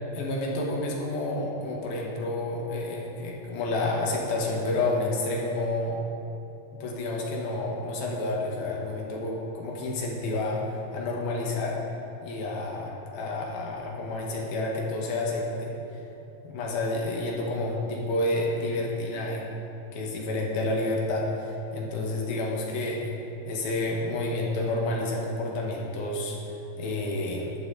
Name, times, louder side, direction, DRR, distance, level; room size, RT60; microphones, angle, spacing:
voice 1, 0.1-6.0 6.8-11.8 12.2-16.0 16.4-19.4 19.9-23.1 23.5-27.6, left 2 dB, 80° left, -2 dB, 3.2 m, -30 dB
12.0 x 10.5 x 4.0 m, 3.0 s
omnidirectional pair, 4.3 m